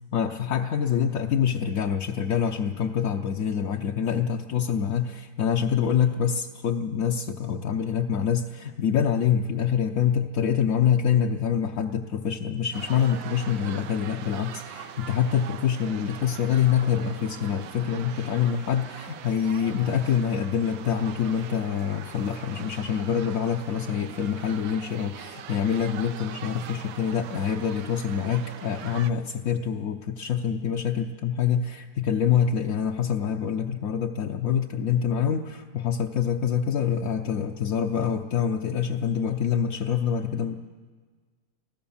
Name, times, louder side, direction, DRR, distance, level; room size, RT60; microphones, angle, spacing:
voice 1, 0.1-40.6, left 8 dB, 60° left, 1 dB, 1.0 m, -26 dB
sound 1, 12.7-29.1, right 9 dB, 85° right, 1.5 m, -42 dB
25.5 x 15.5 x 7.2 m, 1.5 s
omnidirectional pair, 2.0 m